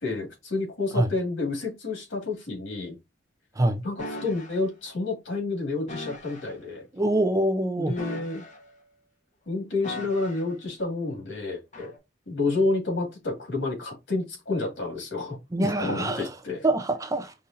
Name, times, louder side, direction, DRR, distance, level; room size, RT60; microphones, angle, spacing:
voice 1, 0.0-3.0 3.8-6.9 7.8-8.4 9.5-11.9 12.3-16.7, left 3 dB, 75° left, 2.4 m, -29 dB
sound 1, 4.0-4.6 5.9-6.5 7.9-8.8 9.8-10.6 11.7-12.0, left 1 dB, 40° left, 1.2 m, -39 dB
voice 2, 6.9-7.9 15.5-16.3 16.6-17.3, right 1 dB, 15° right, 0.5 m, -24 dB
5.3 x 2.6 x 2.7 m
head